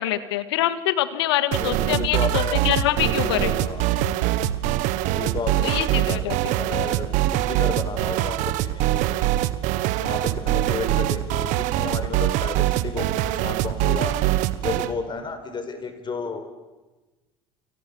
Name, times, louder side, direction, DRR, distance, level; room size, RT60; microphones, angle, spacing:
voice 1, 0.0-3.5 5.6-6.5, left 13 dB, 85° left, 13 dB, 1.7 m, -25 dB
sound 1, 1.5-14.9, right 14 dB, 70° right, 1.3 m, -23 dB
voice 2, 1.6-2.6 3.0-3.9 5.0-9.5 10.0-14.1 14.6-16.5, left 4 dB, 35° left, 8 dB, 5.1 m, -32 dB
29.5 x 26.0 x 7.2 m, 1.2 s
hypercardioid pair, 75°, 13 cm